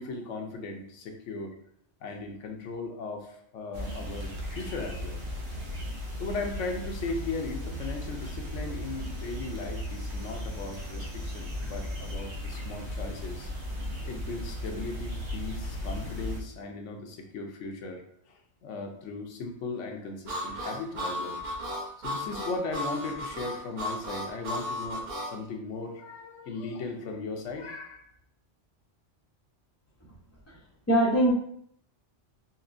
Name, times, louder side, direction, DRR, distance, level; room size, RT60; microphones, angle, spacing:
voice 1, 0.0-1.5 2.0-5.2 6.2-13.5 14.0-21.4 22.0-28.1, left 3 dB, 85° left, 3 dB, 1.0 m, -37 dB
sound 1, 3.7-16.4, left 1 dB, 70° right, 1.0 m, -36 dB
Harmonica, 20.3-25.3, equal, 45° right, 0.8 m, -34 dB
voice 2, 30.9-31.3, right 1 dB, 20° left, -6 dB, 0.4 m, -23 dB
4.2 x 2.9 x 2.5 m, 0.68 s
omnidirectional pair, 1.2 m